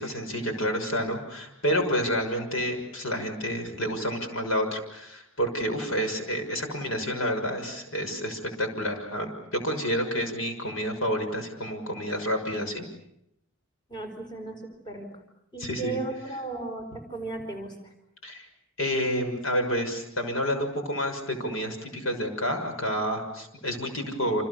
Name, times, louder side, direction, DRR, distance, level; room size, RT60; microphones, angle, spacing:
voice 1, 0.0-12.8 15.6-16.0 18.2-18.5 18.8-24.4, equal, 70° left, 5 dB, 6.3 m, -29 dB
voice 2, 13.9-15.1 15.5-17.7, right 3 dB, 20° left, 4 dB, 4.9 m, -35 dB
29.5 x 28.0 x 7.0 m, 0.79 s
head